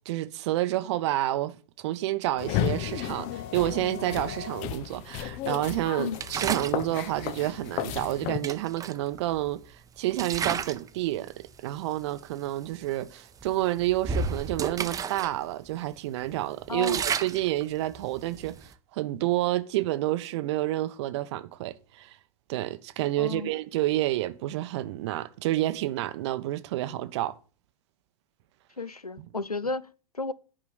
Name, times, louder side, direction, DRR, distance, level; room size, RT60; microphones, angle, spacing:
voice 1, 0.1-22.2 22.5-27.4 29.2-29.3, right 15 dB, 50° right, 0.8 m, -29 dB
sound 1, 2.4-8.4, left 12 dB, 40° left, 0.9 m, -33 dB
sound 2, 6.1-6.8 8.0-8.1 8.4-9.6 10.1-10.9 11.3-11.5 12.2-12.3 12.6-12.9 13.4-15.3 15.7-15.8 16.2-18.7, right 6 dB, 20° right, 0.8 m, -32 dB
voice 2, 16.7-17.0 23.2-23.5 28.8-30.3, left 3 dB, 90° left, 0.6 m, -33 dB
10.0 x 5.7 x 7.8 m
figure-of-eight pair, 90°, 19 cm